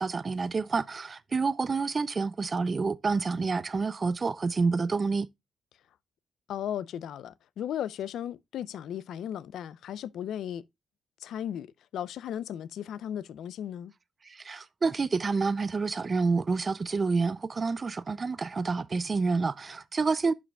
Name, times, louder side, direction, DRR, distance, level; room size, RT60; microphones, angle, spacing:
voice 1, 0.0-5.3 14.2-20.3, right 4 dB, 25° right, 0.3 m, -28 dB
voice 2, 6.5-10.6 11.2-11.7 11.9-13.9, left 10 dB, 75° left, 0.5 m, -36 dB
11.0 x 5.0 x 2.2 m
cardioid pair, 145°, 0 cm